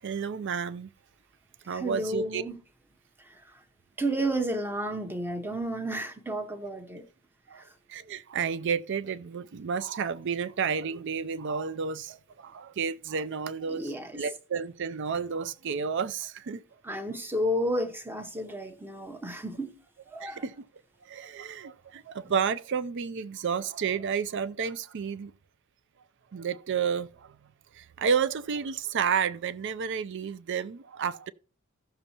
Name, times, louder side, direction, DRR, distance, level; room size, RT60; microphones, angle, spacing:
voice 1, 0.0-0.9 1.7-2.4 7.5-7.6 7.9-16.6 20.2-20.5 21.1-25.3 26.3-27.4 27.7-31.3, right 6 dB, 55° right, 0.4 m, -31 dB
voice 2, 1.7-2.6 4.0-7.0 13.7-14.1 16.9-19.7 20.1-20.4, right 1 dB, 10° right, 0.8 m, -31 dB
15.0 x 6.7 x 2.9 m
head